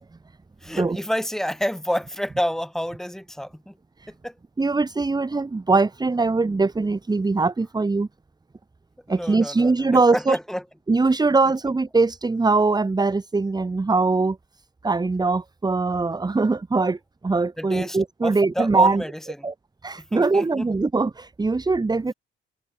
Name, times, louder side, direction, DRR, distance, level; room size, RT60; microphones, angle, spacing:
voice 1, 0.6-3.8 4.2-4.4 9.1-10.6 17.6-19.1 19.4-19.5 20.0-20.7, equal, ahead, 7.0 m, -29 dB
voice 2, 4.6-8.1 9.1-10.4 10.9-14.4 14.8-17.0 17.2-19.0 19.4-19.5 19.8-22.1, right 3 dB, 20° right, 1.8 m, -21 dB
cardioid pair, 90°, 20 cm